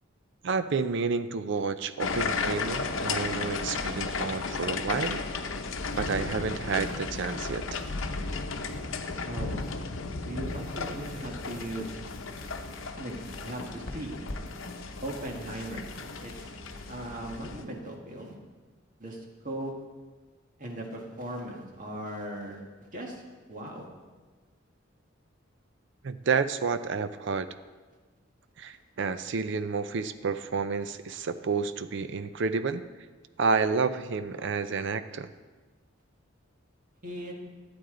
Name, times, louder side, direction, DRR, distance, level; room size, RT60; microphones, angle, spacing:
voice 1, 0.4-5.2 5.9-7.8 26.0-27.5 28.6-32.8 33.4-35.3, right 5 dB, 65° right, 12 dB, 0.5 m, -30 dB
sound 1, 2.0-17.6, left 4 dB, 80° left, 0.8 m, -34 dB
sound 2, 4.8-10.0, left 1 dB, 20° left, 3.2 m, -55 dB
voice 2, 9.2-9.6 10.2-12.0 13.0-14.2 15.0-16.6 16.9-18.4 19.0-19.7 20.6-22.6 22.9-23.2 23.5-23.9 37.0-37.3, right 1 dB, 45° right, 0 dB, 1.7 m, -38 dB
sound 3, 10.4-18.2, left 2 dB, 50° left, 1.4 m, -48 dB
12.5 x 8.8 x 3.8 m, 1.3 s
head